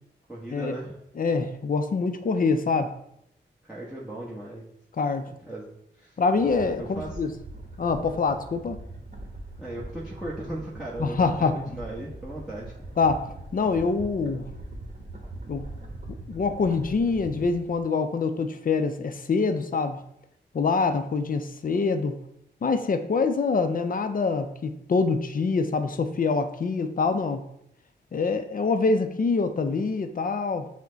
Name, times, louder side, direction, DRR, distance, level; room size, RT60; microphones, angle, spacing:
voice 1, 0.3-0.9 3.7-4.6 5.4-6.2 6.8-7.4 9.6-12.7 15.2-15.3, right 1 dB, ahead, -6 dB, 1.1 m, -37 dB
voice 2, 1.2-3.0 5.0-5.3 6.2-7.3 7.8-8.8 11.0-11.5 13.0-14.5 15.5-15.7 16.3-20.0 20.5-22.2 22.6-27.5 28.1-30.7, left 4 dB, 45° left, 8 dB, 0.5 m, -25 dB
sound 1, 6.3-17.8, right 1 dB, 45° right, 1.0 m, -41 dB
5.9 x 2.2 x 3.9 m, 0.76 s
cardioid pair, 50°, 19 cm